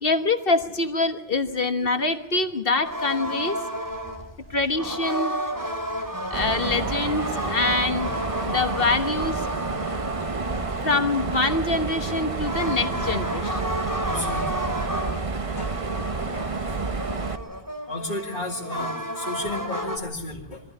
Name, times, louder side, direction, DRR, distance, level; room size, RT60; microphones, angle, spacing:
voice 1, 0.0-3.6 4.5-5.3 6.3-8.1 8.4-9.5 10.8-13.6 16.2-16.5, left 3 dB, 65° left, 8 dB, 1.5 m, -25 dB
sound 1, 2.8-20.0, equal, 20° right, 2.9 m, -32 dB
Mechanisms, 6.3-17.4, right 4 dB, 35° right, 1.0 m, -29 dB
voice 2, 10.3-10.9 12.6-12.7 14.0-14.7 15.6-15.7 17.9-20.6, left 2 dB, 45° left, -4 dB, 2.5 m, -34 dB
23.0 x 14.5 x 9.6 m, 0.88 s
omnidirectional pair, 1.0 m